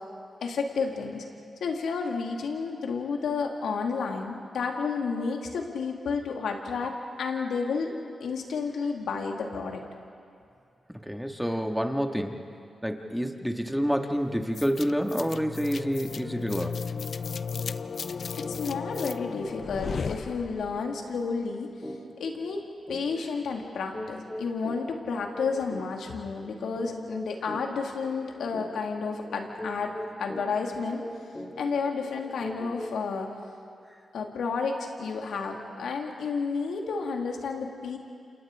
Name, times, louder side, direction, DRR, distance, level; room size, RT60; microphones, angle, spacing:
voice 1, 0.4-1.2 1.6-7.9 8.2-9.8 18.3-21.7 22.2-22.6 22.9-29.9 30.2-31.0 31.6-33.3 34.1-38.0, left 5 dB, 80° left, 2 dB, 2.4 m, -31 dB
voice 2, 11.0-12.4 12.8-16.8, equal, ahead, 3 dB, 2.2 m, -28 dB
sound 1, 14.6-20.9, left 5 dB, 65° left, 0.6 m, -35 dB
sound 2, 21.8-22.0 22.4-22.5 22.9-33.1, left 1 dB, 25° left, 4.8 m, -41 dB
30.0 x 28.0 x 3.9 m, 2.4 s
supercardioid pair, 40°, 0 cm